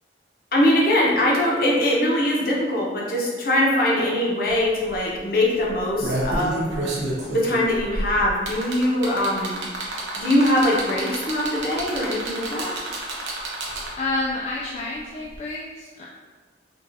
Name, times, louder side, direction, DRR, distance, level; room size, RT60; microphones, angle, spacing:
voice 1, 0.5-6.7 7.3-9.6 10.2-12.7, left 1 dB, 50° left, -4 dB, 0.8 m, -22 dB
sound 1, 4.5-4.6 4.9-5.1 5.7-14.1 15.3-15.4, right 2 dB, 80° right, 0.9 m, -29 dB
voice 2, 13.9-16.0, left 2 dB, 35° left, -4 dB, 0.3 m, -29 dB
5.2 x 2.4 x 2.6 m, 1.5 s
head